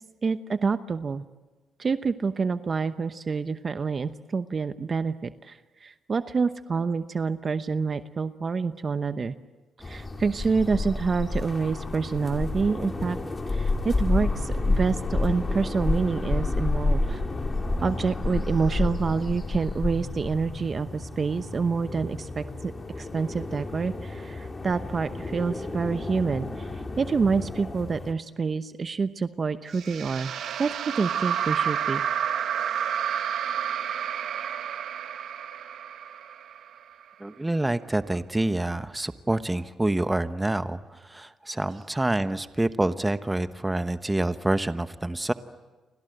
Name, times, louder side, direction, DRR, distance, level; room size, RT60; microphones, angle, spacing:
voice 1, 0.2-1.2 1.8-9.3 9.8-13.2 13.5-17.2 17.8-30.3 30.6-32.0 41.7-41.8, right 5 dB, 40° right, 11 dB, 0.9 m, -27 dB
sound 1, 9.8-28.1, left 2 dB, 25° left, 2.9 m, -30 dB
sound 2, 29.7-37.0, right 8 dB, 70° right, 1.4 m, -30 dB
voice 2, 37.2-45.3, right 1 dB, 10° right, 11 dB, 1.1 m, -27 dB
30.0 x 24.5 x 8.0 m, 1.2 s
cardioid pair, 90°, 0 cm